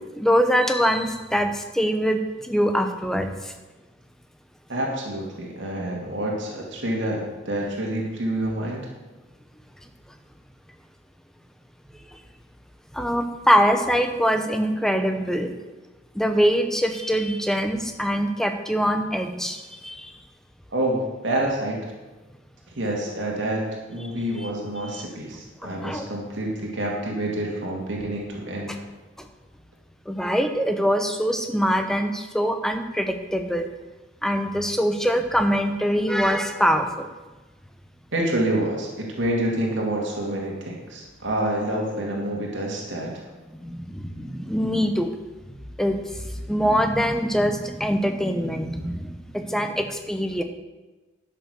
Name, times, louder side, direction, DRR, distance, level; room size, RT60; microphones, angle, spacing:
voice 1, 0.2-3.5 12.9-15.5 16.1-20.1 24.4-24.5 24.9-25.0 25.6-26.1 29.2-29.3 30.1-33.7 34.2-37.1 43.5-45.1 45.8-46.0 46.5-50.4, equal, 5° left, 6 dB, 0.8 m, -23 dB
voice 2, 4.7-8.9 20.7-21.9 22.8-28.8 38.1-43.1, right 1 dB, 70° right, -1 dB, 2.1 m, -27 dB
11.0 x 6.6 x 6.4 m, 1.2 s
head